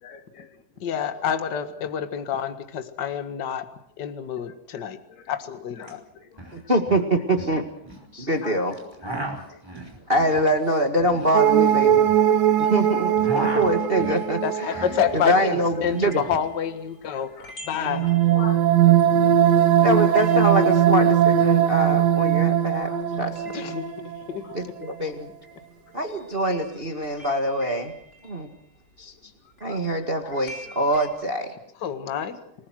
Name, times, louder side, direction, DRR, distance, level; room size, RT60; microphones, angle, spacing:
voice 1, 0.0-0.6 0.8-1.3 4.7-5.4 5.7-6.7 8.4-10.1 13.3-13.6 17.1-18.6 19.5-19.6 20.9-21.1 21.8-22.5 22.8-23.0 24.4-24.6 25.9-26.0 29.2-30.8 31.5-31.6, left 6 dB, 90° left, 5 dB, 3.9 m, -45 dB
voice 2, 0.8-3.7 4.0-5.0 5.3-6.0 14.4-17.3 17.6-18.1 23.5-24.5 31.8-32.4, left 8 dB, 40° left, 8 dB, 1.8 m, -28 dB
sound 1, 5.8-5.9 6.2-6.6 6.8-8.0 8.7-12.7 13.0-15.2 15.5-16.5, right 2 dB, 5° right, 5.0 m, -35 dB
voice 3, 6.5-7.6 8.1-8.7 10.1-12.1 12.6-14.8 15.1-16.2 19.8-22.9 23.2-23.4 24.5-25.3 25.9-27.9 28.2-28.5 29.0-29.1 29.6-31.5, right 1 dB, 25° right, 4 dB, 1.5 m, -24 dB
sound 2, 11.3-15.7 17.9-24.2 24.6-24.7, right 10 dB, 90° right, 3.0 m, -20 dB
sound 3, 16.0-22.6 22.8-31.1, equal, 25° left, 5.7 m, -48 dB
28.5 x 19.5 x 6.3 m, 0.71 s
omnidirectional pair, 3.7 m